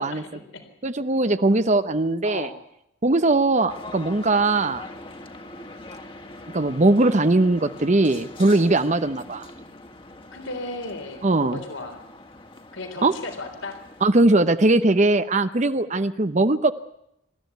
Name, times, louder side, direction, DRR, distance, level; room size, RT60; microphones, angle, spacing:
voice 1, 0.0-0.7 2.2-2.5 8.5-8.8 10.3-12.0 12.7-13.8 15.8-15.9, left 2 dB, 70° left, 6 dB, 3.8 m, -36 dB
voice 2, 0.8-2.5 3.0-4.8 6.5-9.5 11.2-11.6 13.0-13.1 14.0-16.7, right 2 dB, 35° right, 11 dB, 0.9 m, -20 dB
sound 1, 3.7-14.1, left 2 dB, 25° left, 2.1 m, -42 dB
26.5 x 14.0 x 9.3 m, 0.80 s
head